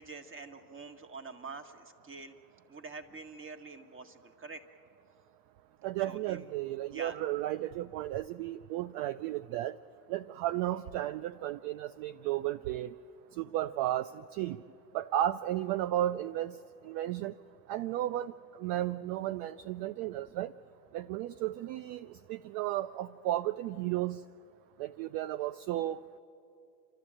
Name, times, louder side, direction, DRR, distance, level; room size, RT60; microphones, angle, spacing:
voice 1, 0.0-2.4 2.7-4.6 6.0-6.5 6.9-7.2, right 4 dB, 25° right, 6 dB, 1.8 m, -46 dB
voice 2, 5.8-9.8 10.1-12.9 13.4-14.6 14.9-16.6 16.8-17.3 17.7-18.3 18.6-20.5 20.9-24.2 24.8-26.0, right 13 dB, 55° right, 14 dB, 0.6 m, -34 dB
29.0 x 12.5 x 8.9 m, 2.6 s
hypercardioid pair, 75°, 49 cm